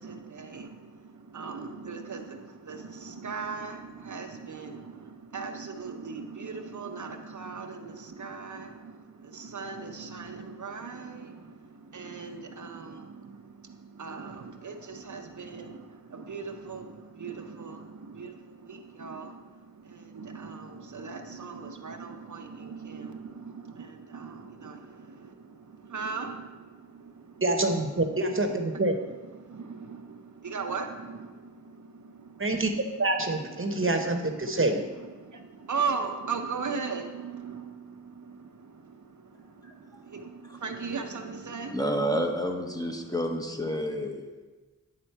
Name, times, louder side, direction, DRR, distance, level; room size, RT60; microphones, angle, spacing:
voice 1, 0.0-27.4 28.0-28.1 28.4-28.8 29.1-32.9 33.6-34.6 35.0-42.3 42.7-43.2 43.7-44.1, right 5 dB, 70° right, 5 dB, 0.6 m, -39 dB
voice 2, 27.4-29.0 32.4-32.7 33.0-34.9, right 2 dB, 40° right, 5 dB, 0.8 m, -26 dB
voice 3, 41.7-44.4, equal, 10° left, 2 dB, 0.8 m, -30 dB
9.6 x 3.6 x 4.5 m, 1.3 s
wide cardioid pair, 50°, 32 cm